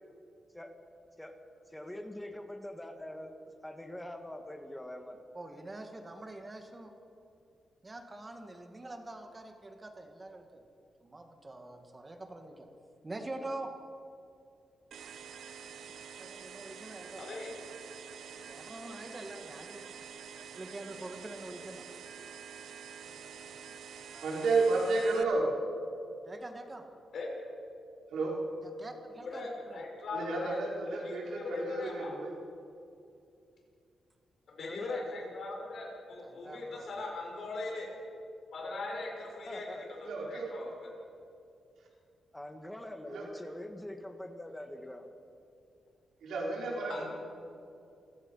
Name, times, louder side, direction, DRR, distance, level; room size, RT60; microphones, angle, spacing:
voice 1, 1.7-3.3 3.6-5.2 34.6-35.0 39.5-39.8 42.3-45.1, left 1 dB, 5° left, 5 dB, 1.9 m, -44 dB
voice 2, 5.3-6.9 7.8-10.6 11.0-12.7 13.0-13.7 16.0-17.5 18.5-19.9 20.5-21.9 26.2-26.9 28.8-29.8 36.2-37.0, right 2 dB, 20° right, 5 dB, 2.1 m, -45 dB
sound 1, 14.9-25.2, right 7 dB, 70° right, 0.9 m, -47 dB
voice 3, 17.2-17.5 23.0-23.6 27.1-27.3 29.2-32.1 34.5-37.9 38.5-39.7 40.0-40.9 46.9-47.1, left 2 dB, 60° left, -1 dB, 6.1 m, -40 dB
voice 4, 24.2-25.5 28.1-28.3 30.1-32.3 40.0-40.5 43.1-43.3 46.2-47.1, right 3 dB, 90° right, -3 dB, 5.0 m, -31 dB
28.0 x 16.5 x 5.7 m, 2.6 s
wide cardioid pair, 140°, 0 cm